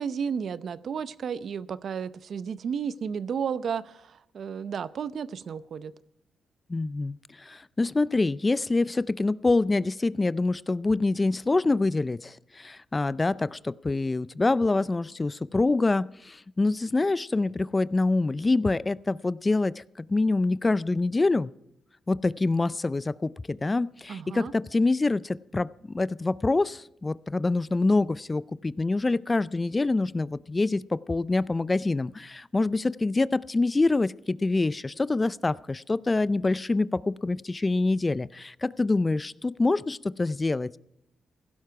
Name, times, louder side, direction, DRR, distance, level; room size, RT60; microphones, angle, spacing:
voice 1, 0.0-5.9 24.1-24.5, right 7 dB, 65° right, 0.6 m, -33 dB
voice 2, 6.7-21.5 22.1-25.7 25.9-40.8, left 3 dB, 25° left, 0.4 m, -26 dB
16.0 x 12.0 x 4.7 m
cardioid pair, 80°, 0 cm